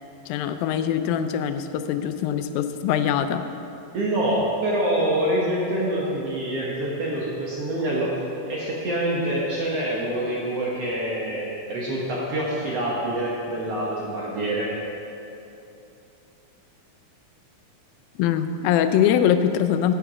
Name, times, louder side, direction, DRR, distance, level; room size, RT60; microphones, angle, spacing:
voice 1, 0.3-3.5 18.2-19.9, left 9 dB, 90° left, 10 dB, 2.3 m, -23 dB
voice 2, 3.9-8.1 8.5-14.7, right 1 dB, 60° right, -5 dB, 1.7 m, -26 dB
9.1 x 9.0 x 4.8 m, 2.8 s
omnidirectional pair, 4.1 m